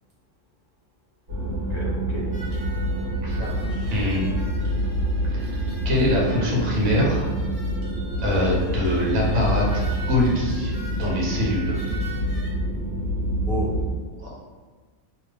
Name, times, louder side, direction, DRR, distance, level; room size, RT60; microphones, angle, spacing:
sound 1, 1.3-13.9, right 1 dB, 60° right, 1.3 m, -27 dB
voice 1, 1.5-2.3 3.3-4.4 13.5-13.7, left 1 dB, 65° left, -8 dB, 0.4 m, -34 dB
sound 2, 2.3-12.5, right 3 dB, 40° right, 0.6 m, -43 dB
voice 2, 5.8-7.3 8.2-10.7 11.0-11.8 14.2-14.3, left 1 dB, 80° right, -3 dB, 1.2 m, -23 dB
2.8 x 2.2 x 3.4 m, 1.4 s
omnidirectional pair, 1.4 m